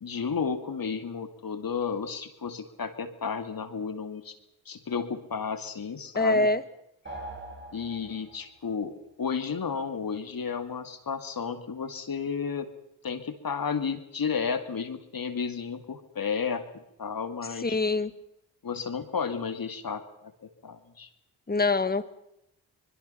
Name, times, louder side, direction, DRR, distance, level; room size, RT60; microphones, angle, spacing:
voice 1, 0.0-4.4 4.7-6.5 7.7-12.7 13.0-17.8 18.6-20.0 20.6-21.1, left 6 dB, 50° left, 8 dB, 2.3 m, -32 dB
voice 2, 6.1-6.6 17.6-18.1 21.5-22.1, left 3 dB, 20° left, 13 dB, 1.5 m, -24 dB
sound 1, 7.0-8.6, right 1 dB, 25° right, 4.5 m, -42 dB
24.5 x 21.5 x 5.7 m, 0.81 s
supercardioid pair, 50°, 45 cm